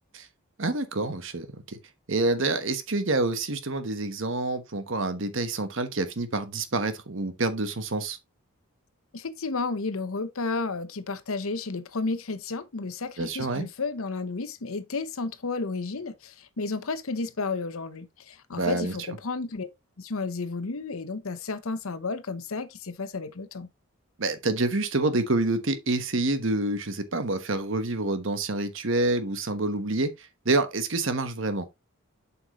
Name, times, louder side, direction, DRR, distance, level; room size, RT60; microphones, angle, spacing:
voice 1, 0.6-1.8 2.1-8.2 13.2-13.7 18.5-18.9 24.2-31.6, right 2 dB, 60° right, 1.1 m, -27 dB
voice 2, 9.1-19.7 20.0-23.7, left 3 dB, 75° left, 0.8 m, -32 dB
7.7 x 5.8 x 3.0 m
head